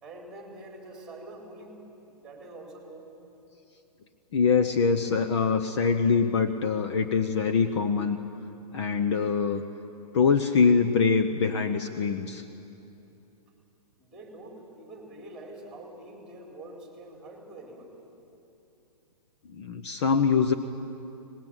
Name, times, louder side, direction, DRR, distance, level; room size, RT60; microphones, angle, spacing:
voice 1, 0.0-1.8 2.1-3.1 14.0-18.0, right 2 dB, 5° right, 0 dB, 4.2 m, -45 dB
voice 2, 4.3-8.2 8.7-9.6 10.1-12.4 19.5-20.5, left 5 dB, 45° left, 7 dB, 1.1 m, -24 dB
24.0 x 20.0 x 9.0 m, 2.8 s
hypercardioid pair, 160°, 21 cm